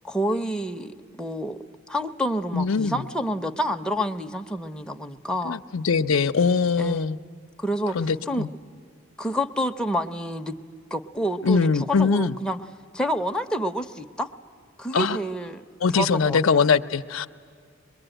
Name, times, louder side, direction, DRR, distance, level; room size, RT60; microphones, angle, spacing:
voice 1, 0.0-1.6 1.9-5.6 6.8-7.1 7.6-8.5 9.2-10.6 10.9-12.6 12.9-14.3 14.8-15.6 15.9-16.7, equal, 5° left, 3 dB, 0.6 m, -28 dB
voice 2, 2.5-3.0 5.4-7.2 7.9-8.5 11.4-12.4 14.9-15.2 15.8-17.3, left 5 dB, 75° left, 10 dB, 0.6 m, -22 dB
23.0 x 22.0 x 9.0 m, 2.2 s
head